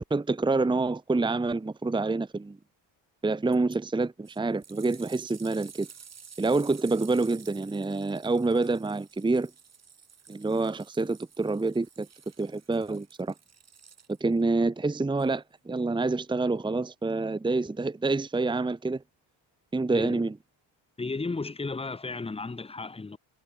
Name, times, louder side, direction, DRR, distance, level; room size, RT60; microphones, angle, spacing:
voice 1, 0.0-2.6 3.2-5.9 6.4-9.5 10.3-12.1 12.4-13.3 14.2-19.0 19.7-20.3, right 3 dB, 10° right, 1.0 m, -27 dB
sound 1, 3.5-3.8 4.2-14.4 15.2-15.3, right 6 dB, 35° right, 4.4 m, -52 dB
voice 2, 19.9-20.3 21.0-23.2, left 3 dB, 10° left, 1.1 m, -34 dB
cardioid pair, 115°, 46 cm